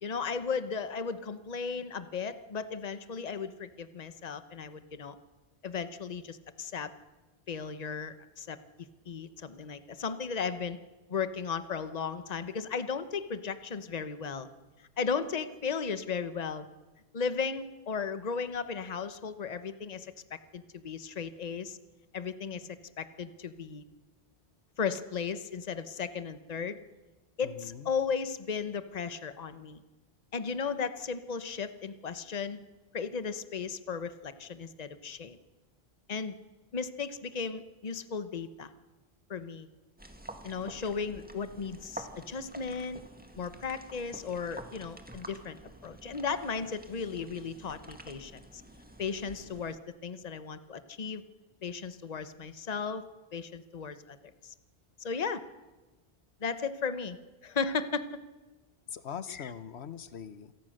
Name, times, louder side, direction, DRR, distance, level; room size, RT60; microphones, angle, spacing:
voice 1, 0.0-5.2 5.6-6.9 7.5-8.6 9.1-10.8 11.1-14.5 14.8-16.7 17.1-21.8 22.1-23.8 24.8-26.8 27.4-29.8 30.3-32.6 32.9-35.4 36.1-36.4 36.7-38.7 39.3-39.7 40.4-43.0 43.4-45.6 45.8-48.6 49.0-51.2 51.6-53.0 53.3-54.5 55.0-55.4 56.4-57.2 57.4-58.1 59.4-59.5, left 5 dB, 40° left, 1.0 m, -35 dB
voice 2, 27.4-27.9 58.9-60.5, left 8 dB, 90° left, 1.2 m, -42 dB
sound 1, 40.0-49.8, right 1 dB, 10° right, 1.8 m, -49 dB
27.5 x 17.5 x 6.5 m
omnidirectional pair, 1.1 m